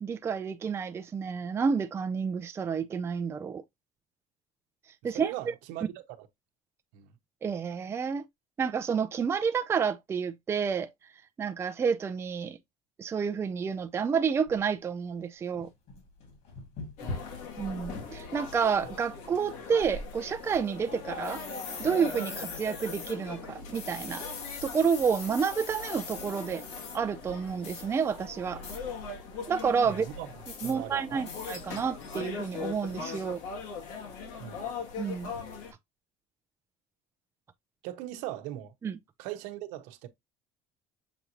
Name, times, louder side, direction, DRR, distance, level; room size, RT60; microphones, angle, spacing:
voice 1, 0.0-3.6 5.0-5.3 7.4-8.2 8.6-10.9 11.4-12.6 13.0-15.7 17.6-21.4 21.8-24.3 24.6-26.6 26.9-28.6 29.5-30.1 30.6-33.4 35.0-35.3 38.8-39.0, right 6 dB, 20° right, 0.4 m, -29 dB
voice 2, 5.1-6.3 6.9-7.1 17.0-17.3 29.8-30.3 30.6-31.2 34.4-34.7 37.8-38.7 39.2-40.1, right 13 dB, 80° right, 0.9 m, -40 dB
sound 1, 13.7-13.8 14.5-14.6 15.2-15.3 15.5-18.0 18.3-18.4 18.8-19.4 19.8-20.6 21.2-23.1 23.7-27.0 27.6-27.8 28.6-28.8 30.4-30.7 31.2-31.6 32.1-32.2, left 4 dB, 55° left, 2.2 m, -42 dB
sound 2, 17.0-35.7, left 5 dB, 75° left, 1.7 m, -41 dB
6.9 x 2.6 x 2.9 m
cardioid pair, 140°, 13 cm